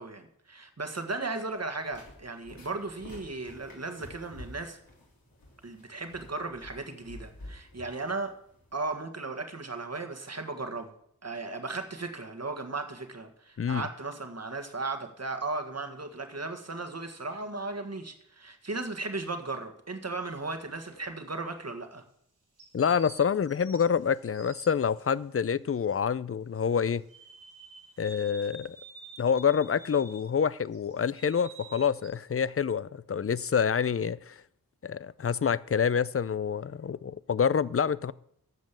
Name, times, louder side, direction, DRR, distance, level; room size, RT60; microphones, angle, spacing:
voice 1, 0.0-4.8 5.6-8.3 8.7-10.9 11.2-22.0, right 3 dB, 45° right, 1.7 m, -36 dB
sound 1, 1.5-8.9, left 1 dB, 75° left, 3.3 m, -50 dB
sound 2, 20.2-21.1 22.6-25.0 27.1-30.3 30.7-32.1, right 2 dB, 90° right, 4.2 m, -50 dB
voice 2, 22.7-27.0 28.0-28.8 29.2-34.4 34.8-38.1, left 7 dB, 40° left, 0.5 m, -27 dB
13.5 x 5.3 x 7.4 m
cardioid pair, 40°, 35 cm